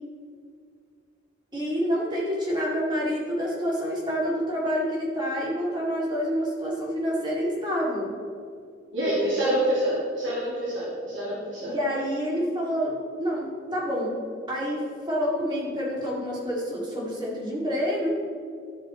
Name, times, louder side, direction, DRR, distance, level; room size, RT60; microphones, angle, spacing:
voice 1, 1.5-8.1 11.7-14.2 14.5-18.1, equal, 25° right, -4 dB, 2.2 m, -28 dB
voice 2, 8.9-11.8, right 1 dB, 85° right, -8 dB, 2.5 m, -26 dB
13.5 x 5.3 x 4.3 m, 2.3 s
head